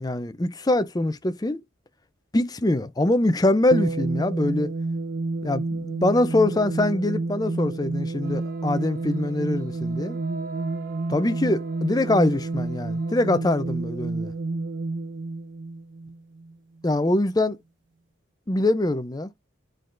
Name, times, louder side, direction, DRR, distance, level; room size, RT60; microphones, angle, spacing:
voice 1, 0.0-1.6 2.3-4.7 5.4-10.2 11.1-14.3 16.8-17.6 18.5-19.3, left 2 dB, 20° left, 0.5 m, -23 dB
sound 1, 3.7-16.5, right 3 dB, 65° right, 0.7 m, -30 dB
sound 2, 8.2-13.3, right 5 dB, 45° right, 1.0 m, -45 dB
10.5 x 3.8 x 2.5 m
head